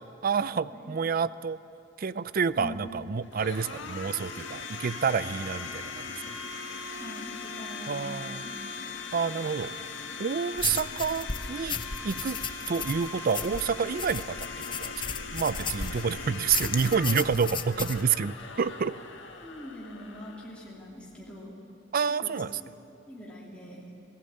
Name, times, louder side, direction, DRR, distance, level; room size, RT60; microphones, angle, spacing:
voice 1, 0.2-1.6 2.0-6.3 7.9-8.4 9.1-9.7 10.2-12.4 12.7-15.0 15.3-18.9 21.9-22.5, right 6 dB, 50° right, 16 dB, 0.5 m, -29 dB
Domestic sounds home sounds, 2.3-21.2, left 4 dB, 70° left, 2.0 m, -40 dB
voice 2, 6.9-8.8 16.6-16.9 19.4-21.5 22.2-22.3 22.6-22.7 23.1-23.8, left 1 dB, 5° left, -6 dB, 3.1 m, -43 dB
sound 1, 10.6-16.1 16.5-18.0, left 5 dB, 25° left, 0.8 m, -35 dB
20.5 x 16.0 x 8.9 m, 2.8 s
head